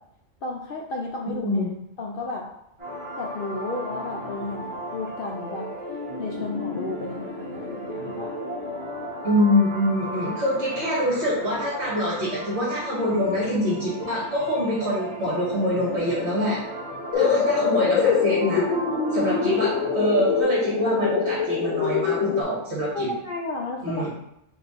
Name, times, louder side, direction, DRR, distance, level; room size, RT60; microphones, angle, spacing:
voice 1, 0.4-1.6 2.0-2.4 3.2-5.7 6.2-8.4 13.4-13.5 17.8-17.9 22.9-24.1, left 2 dB, 65° left, 0 dB, 0.5 m, -32 dB
voice 2, 1.2-1.7 9.2-16.6 17.1-18.7 19.1-23.1 23.8-24.1, left 1 dB, 55° right, -6 dB, 1.5 m, -25 dB
sound 1, 2.8-20.4, equal, 25° right, 1.8 m, -35 dB
sound 2, 17.1-22.4, left 6 dB, 90° left, 1.0 m, -24 dB
4.3 x 2.5 x 4.1 m, 0.79 s
omnidirectional pair, 1.4 m